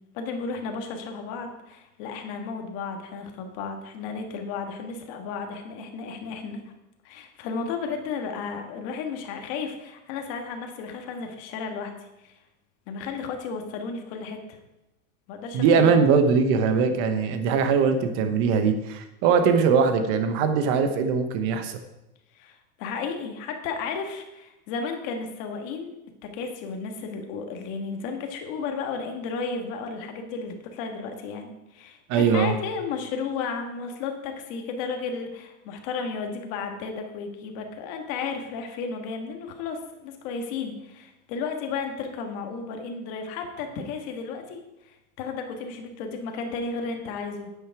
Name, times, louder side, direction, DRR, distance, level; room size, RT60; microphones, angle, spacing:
voice 1, 0.1-6.6 7.0-12.0 12.2-12.3 12.9-14.6 15.3-16.0 22.3-25.9 26.3-47.5, left 5 dB, 35° left, 4 dB, 1.5 m, -33 dB
voice 2, 15.5-21.8 32.1-32.6, right 5 dB, 30° right, 8 dB, 1.0 m, -21 dB
9.5 x 9.1 x 4.7 m, 0.95 s
supercardioid pair, 165°, 44 cm